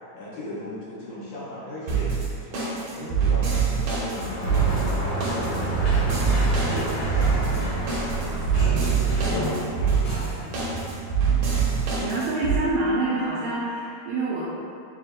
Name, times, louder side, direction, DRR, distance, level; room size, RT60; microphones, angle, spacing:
voice 1, 0.1-6.4 6.6-10.5, left 1 dB, 75° left, -8 dB, 2.0 m, -38 dB
sound 1, 1.9-12.6, right 6 dB, 65° right, 1.7 m, -24 dB
Sliding door, 4.0-11.1, equal, 55° left, 1.7 m, -29 dB
voice 2, 12.0-14.4, right 2 dB, 85° right, -8 dB, 1.8 m, -26 dB
7.2 x 2.5 x 2.5 m, 2.5 s
omnidirectional pair, 3.9 m